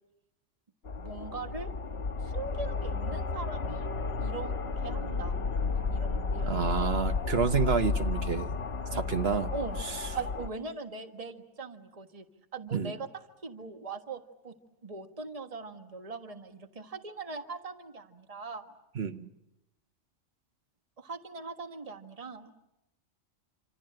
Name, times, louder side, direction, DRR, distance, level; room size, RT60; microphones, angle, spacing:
sound 1, 0.8-10.5, left 4 dB, 55° left, 1.5 m, -32 dB
voice 1, 1.0-1.7 2.2-3.9 4.2-5.3 5.7-6.7 9.5-12.3 12.5-13.1 13.4-14.5 14.8-18.7 21.0-22.5, right 4 dB, 30° right, 7 dB, 1.6 m, -41 dB
voice 2, 6.4-8.5 8.9-9.5 12.7-12.9 19.0-19.3, right 6 dB, 55° right, 9 dB, 1.3 m, -29 dB
27.0 x 26.5 x 7.8 m, 0.89 s
omnidirectional pair, 1.3 m